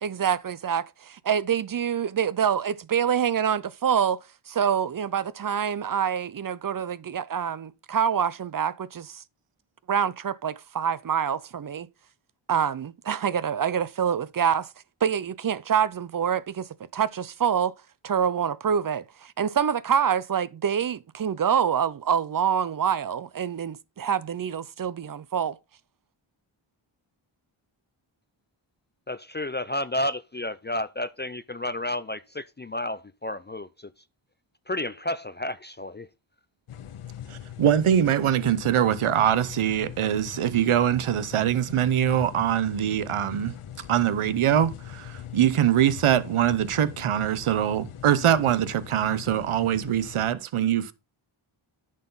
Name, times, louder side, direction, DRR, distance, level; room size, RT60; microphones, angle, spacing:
voice 1, 0.0-4.2 4.5-9.2 9.9-11.9 12.5-14.7 15.0-17.7 18.0-25.6, right 8 dB, 45° right, 0.6 m, -26 dB
voice 2, 29.1-33.9 34.7-36.1, left 1 dB, 25° left, 0.4 m, -31 dB
sound 1, 36.7-50.3, left 10 dB, 80° left, 1.0 m, -41 dB
voice 3, 37.3-43.5 43.9-50.9, right 10 dB, 80° right, 0.8 m, -23 dB
10.5 x 6.5 x 4.0 m
wide cardioid pair, 100°, 49 cm